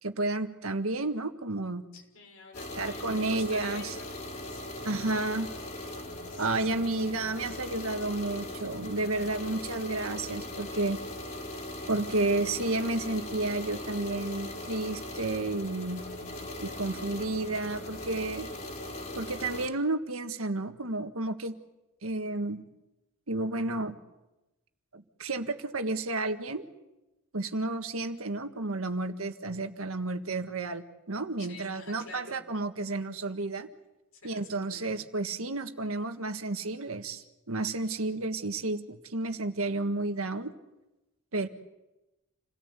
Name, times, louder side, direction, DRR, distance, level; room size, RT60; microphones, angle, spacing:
voice 1, 0.0-1.8 2.8-3.9 4.8-5.5 6.4-11.0 11.9-16.0 16.6-18.5 19.1-21.6 22.0-22.6 23.3-24.0 24.9-26.6 27.3-33.7 34.2-40.5 41.3-41.5, right 2 dB, 80° right, 7 dB, 1.7 m, -31 dB
voice 2, 1.9-5.2 6.2-6.6 12.2-12.5 31.4-32.4 34.1-35.0 37.8-38.0, left 3 dB, 75° left, 2 dB, 6.2 m, -49 dB
sound 1, 2.5-19.7, left 1 dB, 40° left, 4.2 m, -39 dB
28.5 x 18.0 x 8.3 m, 1.0 s
head